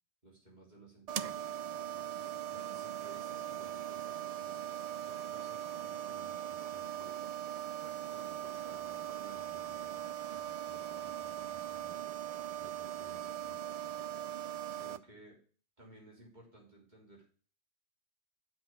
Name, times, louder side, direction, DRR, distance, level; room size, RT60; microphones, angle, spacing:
voice 1, 0.2-1.7 2.5-7.3 7.8-12.0 12.6-13.9 14.7-15.4 15.8-17.3, right 2 dB, 40° right, -4 dB, 3.8 m, -58 dB
sound 1, 1.1-15.0, right 11 dB, 55° right, 0.4 m, -40 dB
7.9 x 5.2 x 7.3 m, 0.41 s
omnidirectional pair, 1.2 m